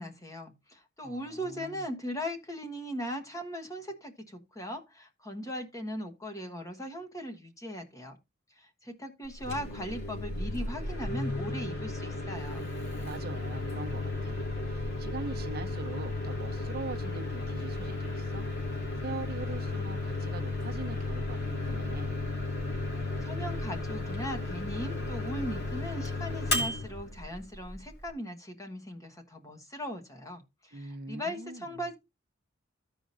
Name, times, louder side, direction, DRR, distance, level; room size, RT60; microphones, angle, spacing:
voice 1, 0.0-8.2 8.6-12.7 23.2-31.9, equal, 15° left, 1.3 m, -39 dB
voice 2, 1.0-1.8 13.0-18.5 19.0-22.1 30.7-31.8, right 3 dB, 50° right, 0.9 m, -42 dB
Microwave oven, 9.3-28.1, left 2 dB, 50° left, 2.6 m, -34 dB
14.5 x 5.0 x 2.7 m
head